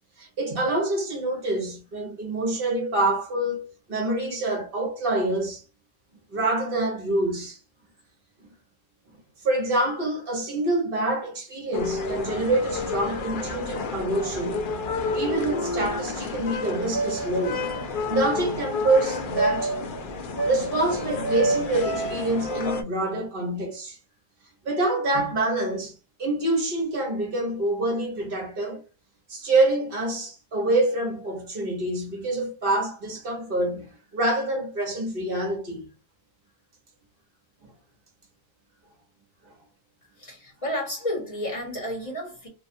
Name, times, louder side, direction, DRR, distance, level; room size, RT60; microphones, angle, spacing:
voice 1, 0.2-5.6 6.3-7.6 8.4-8.5 9.4-14.7 15.1-17.6 18.1-19.8 20.4-24.0 24.6-25.9 26.2-28.8 29.3-35.8, right 2 dB, 60° right, 1.2 m, -26 dB
sound 1, 11.7-22.8, left 1 dB, 60° left, 0.7 m, -29 dB
voice 2, 40.2-42.5, equal, 30° left, 1.5 m, -31 dB
2.9 x 2.4 x 2.6 m
omnidirectional pair, 1.1 m